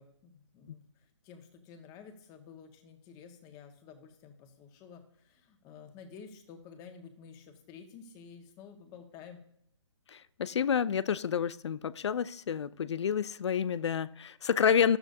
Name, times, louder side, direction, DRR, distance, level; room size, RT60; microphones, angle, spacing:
voice 1, 0.0-9.4, left 6 dB, 25° left, 5 dB, 1.6 m, -51 dB
voice 2, 10.1-15.0, left 7 dB, 65° left, 19 dB, 0.5 m, -29 dB
13.0 x 12.0 x 2.8 m, 0.69 s
hypercardioid pair, 140°, 16 cm